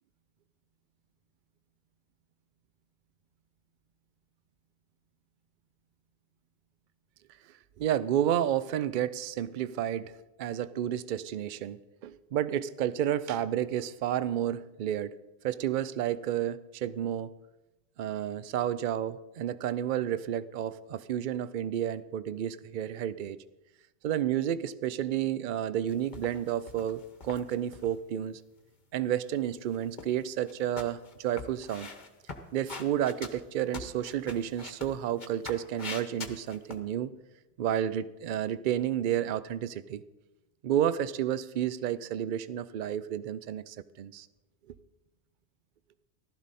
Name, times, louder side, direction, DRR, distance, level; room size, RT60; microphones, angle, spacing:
voice 1, 7.8-15.2 15.4-17.3 18.0-23.4 24.0-28.4 28.9-31.9 32.5-37.1 37.6-40.0 40.6-44.3, right 10 dB, 60° right, 16 dB, 0.6 m, -31 dB
sound 1, 25.9-27.9 29.6-30.2 30.5-36.8, left 4 dB, 45° left, 1.2 m, -43 dB
15.0 x 12.5 x 4.1 m, 1.0 s
omnidirectional pair, 1.1 m